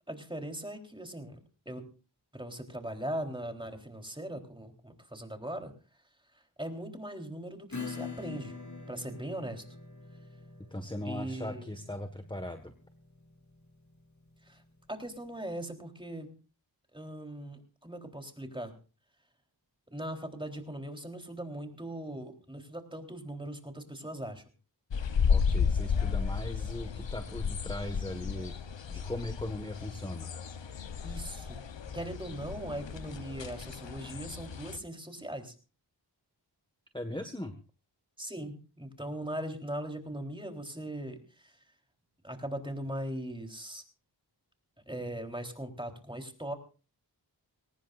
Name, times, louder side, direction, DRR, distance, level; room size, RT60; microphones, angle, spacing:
voice 1, 0.1-1.4 1.7-1.9 2.3-5.7 6.6-8.6 8.9-9.6 11.0-11.7 14.4-14.6 14.9-16.3 16.9-18.7 19.9-24.4 31.0-31.6 31.9-35.5 38.2-41.6 42.2-43.8 44.9-46.5, right 1 dB, 10° right, 4 dB, 3.7 m, -39 dB
Acoustic guitar / Strum, 7.7-14.9, left 4 dB, 40° left, 2.4 m, -45 dB
voice 2, 10.6-12.7 25.3-28.5 28.9-30.3 36.9-37.5, left 1 dB, 10° left, 7 dB, 1.6 m, -39 dB
sound 1, 24.9-34.8, left 6 dB, 80° left, 1.0 m, -33 dB
22.0 x 19.0 x 2.6 m, 0.36 s
wide cardioid pair, 55°, 43 cm